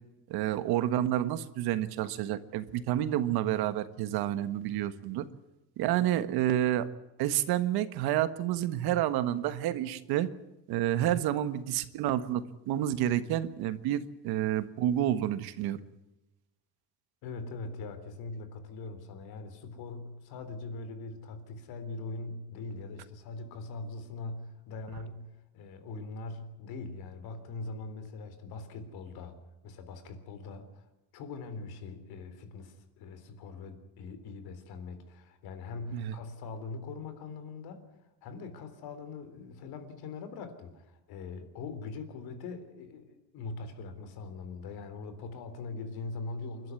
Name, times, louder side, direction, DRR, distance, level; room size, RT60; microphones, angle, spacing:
voice 1, 0.3-5.3 5.8-6.9 7.2-10.3 10.7-15.8 35.9-36.1, right 12 dB, 70° right, 12 dB, 1.5 m, -29 dB
voice 2, 17.2-25.3 25.5-29.4 29.6-30.8 31.1-37.8 38.2-46.7, left 3 dB, 65° left, 10 dB, 3.7 m, -42 dB
28.5 x 12.5 x 9.6 m, 0.99 s
cardioid pair, 175°, 40 cm